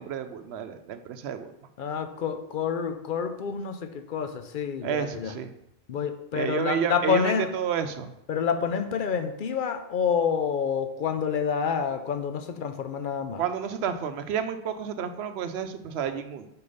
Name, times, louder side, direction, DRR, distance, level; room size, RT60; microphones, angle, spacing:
voice 1, 0.0-1.5 4.8-5.5 6.3-8.1 13.4-16.5, right 8 dB, 90° right, 10 dB, 0.9 m, -30 dB
voice 2, 1.8-5.4 5.9-7.5 8.3-13.4, left 6 dB, 60° left, 8 dB, 0.7 m, -28 dB
5.0 x 4.5 x 5.4 m, 0.82 s
omnidirectional pair, 1.0 m